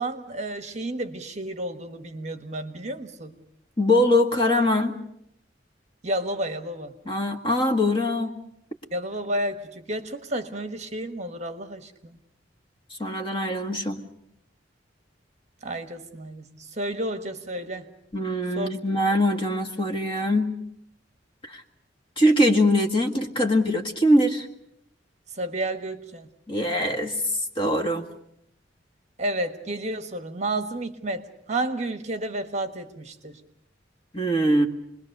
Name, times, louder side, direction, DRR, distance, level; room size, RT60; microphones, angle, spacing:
voice 1, 0.0-3.3 6.0-6.9 8.9-12.2 15.6-16.4 16.7-17.8 18.5-18.8 25.4-26.3 29.2-33.4, right 1 dB, 40° right, 7 dB, 1.4 m, -31 dB
voice 2, 3.8-5.0 7.1-8.3 13.0-14.0 18.1-20.5 21.4-21.6 22.2-24.5 26.5-27.2 27.6-28.0 34.1-34.7, left 1 dB, 30° left, 4 dB, 1.8 m, -22 dB
28.0 x 21.0 x 6.7 m, 0.76 s
head